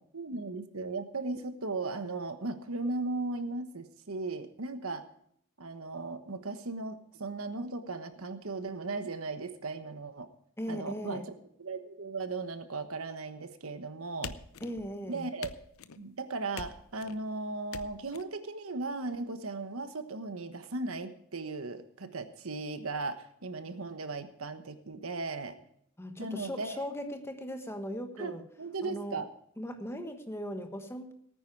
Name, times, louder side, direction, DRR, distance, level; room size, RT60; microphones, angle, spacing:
voice 1, 0.0-5.0 5.6-10.3 10.7-11.2 11.6-14.4 15.1-15.5 16.0-25.6 26.2-26.8 28.2-29.3, right 3 dB, 80° right, 9 dB, 1.3 m, -37 dB
voice 2, 10.6-11.3 14.6-15.3 26.0-28.4 28.8-29.2 29.6-31.1, equal, 10° left, 6 dB, 1.3 m, -38 dB
sound 1, 14.2-15.0 15.4-16.0 16.6-17.2 17.7-18.2, left 6 dB, 80° left, 0.7 m, -44 dB
18.0 x 9.5 x 4.7 m, 0.68 s
head